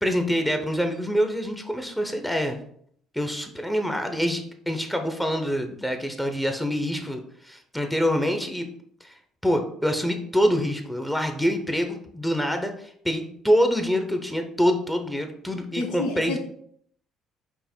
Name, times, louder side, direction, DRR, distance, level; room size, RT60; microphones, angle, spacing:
voice 1, 0.0-2.6 3.1-8.7 9.0-9.1 9.4-16.4, equal, 5° left, 5 dB, 0.7 m, -25 dB
voice 2, 15.8-16.4, left 2 dB, 85° left, 2 dB, 0.9 m, -29 dB
5.4 x 2.1 x 4.4 m, 0.64 s
supercardioid pair, 70°, 0 cm